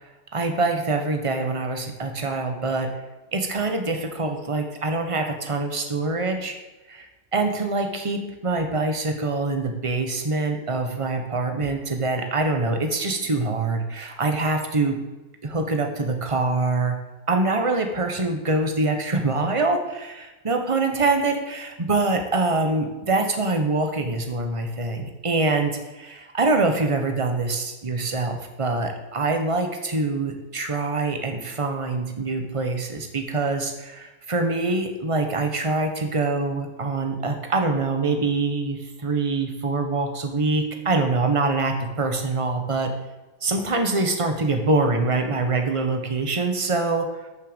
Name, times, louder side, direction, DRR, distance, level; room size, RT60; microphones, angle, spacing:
voice 1, 0.0-3.0 3.3-6.6 6.9-15.0 15.4-17.0 17.3-42.9 43.4-47.1, right 3 dB, 20° right, 5 dB, 1.1 m, -24 dB
12.5 x 6.8 x 7.0 m, 1.1 s
omnidirectional pair, 2.2 m